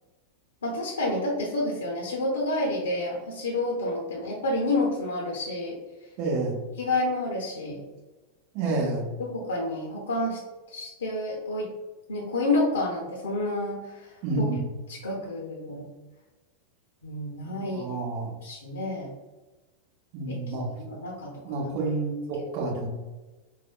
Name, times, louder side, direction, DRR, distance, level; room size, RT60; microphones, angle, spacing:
voice 1, 0.6-5.8 6.8-7.8 9.2-10.4 10.7-11.7 12.1-14.4 14.9-15.9 17.0-17.9 18.4-19.1 20.3-20.4 20.8-21.7, left 2 dB, 70° left, -3 dB, 0.6 m, -29 dB
voice 2, 6.2-6.6 8.5-9.1 14.2-14.6 17.5-18.3 20.1-20.7 21.4-22.9, right 3 dB, 45° right, -4 dB, 1.1 m, -29 dB
4.7 x 2.0 x 2.4 m, 1.2 s
figure-of-eight pair, 90°, 0 cm